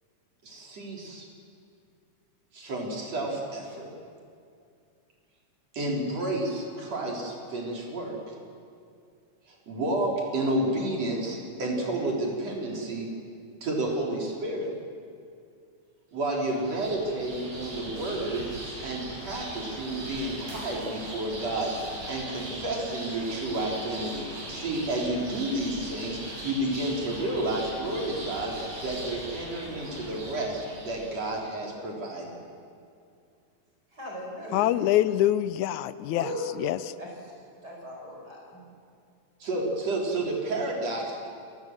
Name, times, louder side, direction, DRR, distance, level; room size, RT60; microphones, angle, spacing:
voice 1, 0.4-1.3 2.5-3.9 5.7-8.3 9.5-13.1 13.6-14.7 16.1-18.4 18.8-28.5 28.8-32.4 39.4-41.3, right 1 dB, 60° right, -2 dB, 5.1 m, -31 dB
sound 1, 16.3-31.4, right 1 dB, 75° right, 7.8 m, -40 dB
voice 2, 33.9-34.6 36.1-36.5 37.0-37.3 37.6-38.6, equal, 30° right, -2 dB, 5.4 m, -38 dB
voice 3, 34.5-36.3 36.6-36.8, left 13 dB, 85° left, 15 dB, 2.1 m, -24 dB
29.5 x 18.5 x 7.5 m, 2.4 s
omnidirectional pair, 3.3 m